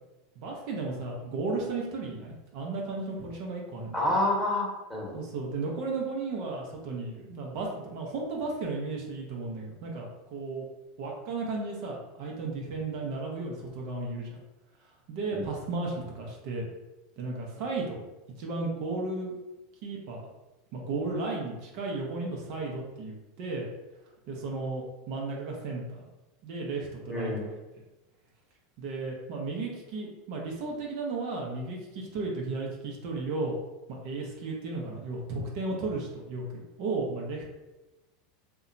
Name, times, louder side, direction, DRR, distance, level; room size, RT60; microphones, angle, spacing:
voice 1, 0.4-4.0 5.1-10.6 11.0-14.3 15.1-16.7 17.2-18.0 18.4-19.4 19.8-20.2 20.7-23.7 24.3-26.0 26.4-27.6 28.8-33.5 34.0-37.4, right 3 dB, 60° right, -1 dB, 0.6 m, -34 dB
voice 2, 3.9-5.2 15.3-15.5 27.1-27.5, left 1 dB, 5° left, -4 dB, 1.0 m, -28 dB
2.7 x 2.2 x 2.5 m, 1.0 s
hypercardioid pair, 100°, 0 cm